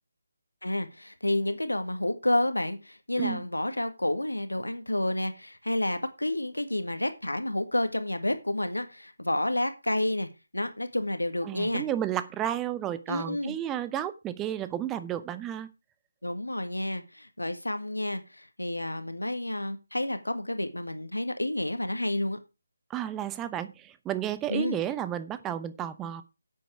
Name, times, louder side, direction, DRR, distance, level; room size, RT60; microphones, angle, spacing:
voice 1, 0.6-10.3 10.5-11.9 13.1-13.5 16.2-22.4 24.5-24.8, left 1 dB, 80° left, 9 dB, 1.8 m, -30 dB
voice 2, 11.4-15.7 22.9-26.2, right 11 dB, 10° right, 13 dB, 0.7 m, -32 dB
10.0 x 8.3 x 4.8 m, 0.28 s
figure-of-eight pair, 150°, 0 cm